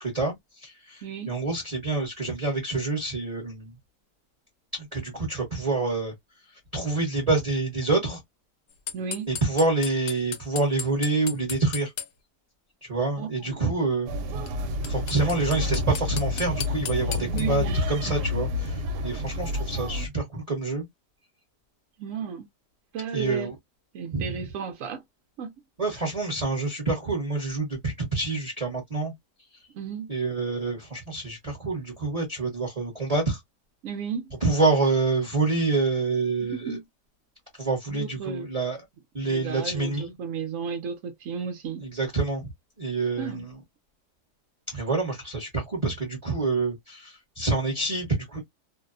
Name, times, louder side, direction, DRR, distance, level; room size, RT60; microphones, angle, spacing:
voice 1, 0.0-3.7 4.7-6.1 6.7-8.2 9.3-11.9 12.8-14.1 14.9-20.9 23.1-23.5 24.1-24.4 25.8-29.1 30.1-33.4 34.4-36.8 37.6-38.8 39.1-40.1 41.8-42.5 42.8-43.6 44.7-48.4, right 3 dB, 30° right, 0.8 m, -27 dB
voice 2, 1.0-1.3 8.9-9.3 13.2-13.6 17.3-17.8 22.0-22.4 22.9-23.5 23.9-25.0 25.4-25.5 29.7-30.1 33.8-34.3 36.4-36.8 37.9-38.5 39.2-41.9 43.2-43.5, right 6 dB, 65° right, 0.8 m, -34 dB
sound 1, 8.9-12.1 14.5-14.6 14.8-17.4, left 8 dB, 75° left, 1.2 m, -34 dB
sound 2, 14.1-20.1, left 2 dB, 90° right, 1.2 m, -29 dB
2.7 x 2.1 x 2.4 m
omnidirectional pair, 1.7 m